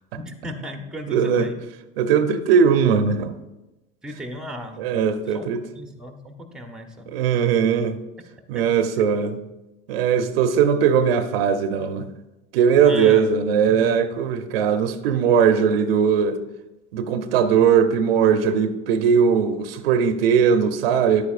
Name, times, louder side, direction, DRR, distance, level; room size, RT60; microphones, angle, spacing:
voice 1, 0.2-1.6 4.0-5.5 5.7-7.1 8.5-8.6 12.8-13.2 13.6-14.1, equal, 5° right, 0.9 m, -36 dB
voice 2, 1.1-1.5 2.0-3.3 4.8-5.6 7.1-8.0 8.5-9.4 9.9-12.1 12.5-16.4 16.9-21.3, right 7 dB, 75° right, 0.7 m, -19 dB
9.9 x 8.4 x 2.5 m
hypercardioid pair, 95°, 30 cm